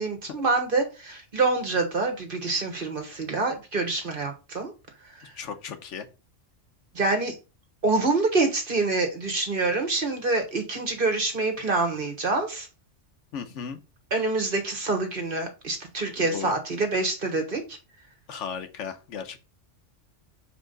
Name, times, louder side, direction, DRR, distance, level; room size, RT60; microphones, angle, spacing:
voice 1, 0.0-4.7 6.9-7.3 7.8-12.7 14.1-17.6, right 3 dB, 45° right, 1.6 m, -26 dB
voice 2, 5.4-6.1 13.3-13.8 16.2-16.6 18.3-19.4, left 7 dB, 80° left, 1.1 m, -36 dB
5.7 x 4.6 x 3.8 m
omnidirectional pair, 1.2 m